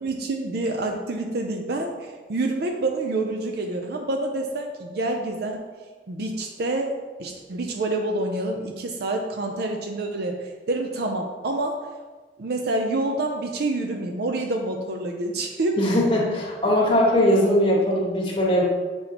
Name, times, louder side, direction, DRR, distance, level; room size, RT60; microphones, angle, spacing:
voice 1, 0.0-5.7 6.1-11.8 12.4-15.8, right 2 dB, 60° right, 3 dB, 0.5 m, -27 dB
voice 2, 15.8-18.6, equal, 30° left, -4 dB, 1.4 m, -20 dB
7.0 x 5.2 x 2.9 m, 1.4 s
head